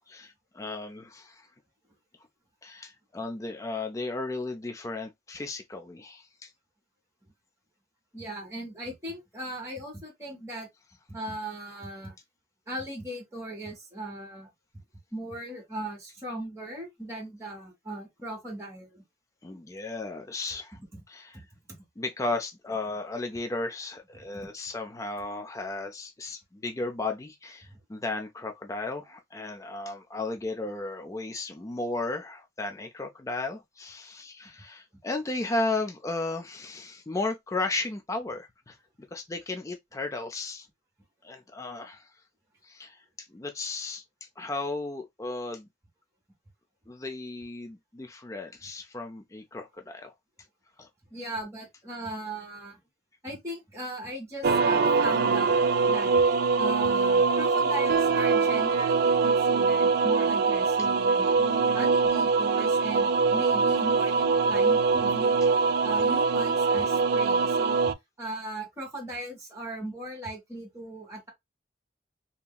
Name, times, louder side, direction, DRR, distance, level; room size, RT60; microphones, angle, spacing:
voice 1, 0.1-1.5 2.6-6.5 19.4-20.8 21.1-21.4 22.0-40.7 41.2-42.1 42.6-45.7 46.9-50.1 50.8-50.9 61.4-61.9, left 2 dB, 15° left, 0.4 m, -35 dB
voice 2, 8.1-10.7 11.1-12.2 12.7-14.5 15.1-19.0 20.9-21.0 21.3-21.4 27.7-27.8 51.1-52.8 53.2-55.5 55.9-56.1 56.6-61.3 61.7-65.5 65.8-67.8 68.2-71.3, right 1 dB, 15° right, 1.2 m, -38 dB
sound 1, 54.4-67.9, right 4 dB, 55° right, 0.3 m, -23 dB
2.8 x 2.6 x 2.2 m
head